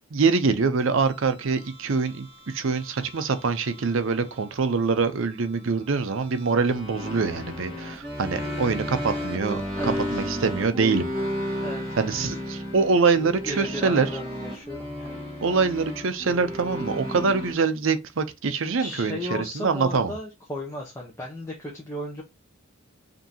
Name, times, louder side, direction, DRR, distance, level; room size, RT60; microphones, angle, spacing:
voice 1, 0.1-11.1 12.0-14.1 15.4-20.1, right 4 dB, 60° right, 0.6 m, -24 dB
sound 1, 1.0-17.5, left 1 dB, 20° right, 1.4 m, -34 dB
voice 2, 9.8-10.2 11.6-12.4 13.4-15.2 18.8-22.2, left 1 dB, 10° left, 0.7 m, -35 dB
5.2 x 2.7 x 2.7 m
head